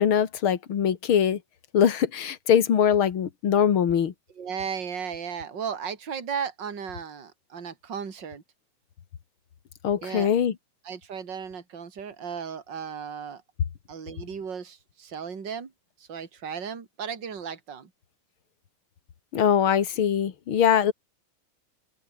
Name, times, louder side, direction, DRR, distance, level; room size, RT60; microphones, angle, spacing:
voice 1, 0.0-1.4 1.7-4.1 9.8-10.5 19.3-20.9, left 8 dB, 65° left, 1.2 m, -22 dB
voice 2, 4.3-8.4 10.0-10.3 10.8-13.4 13.9-15.7 16.0-17.9, right 7 dB, 25° right, 3.2 m, -35 dB
open air
omnidirectional pair, 5.1 m